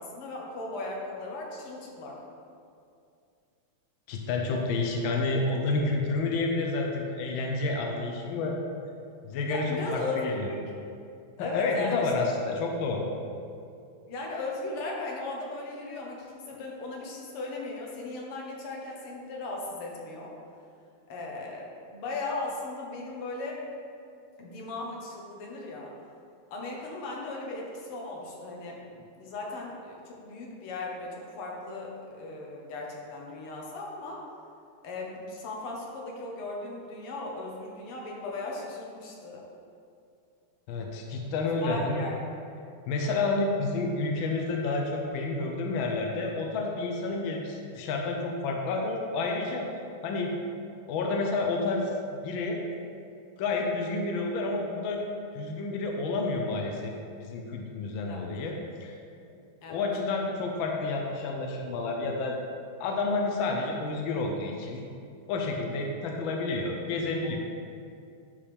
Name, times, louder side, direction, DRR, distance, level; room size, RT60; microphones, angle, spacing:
voice 1, 0.0-2.2 9.5-10.6 11.4-12.1 14.1-20.3 21.1-23.8 24.4-25.9 26.5-28.8 29.2-34.2 34.8-39.4 41.4-42.2 58.1-58.2 59.6-59.8, left 2 dB, 90° left, -2 dB, 2.1 m, -37 dB
voice 2, 4.1-8.6 9.2-9.6 9.9-10.5 11.4-13.1 40.7-42.0 42.9-49.7 50.0-50.3 50.9-52.6 53.4-55.0 55.3-56.9 57.2-58.9 59.7-62.3 62.8-64.8 65.3-67.4, left 3 dB, 70° left, 1 dB, 1.5 m, -30 dB
11.0 x 5.0 x 3.5 m, 2.5 s
omnidirectional pair, 2.4 m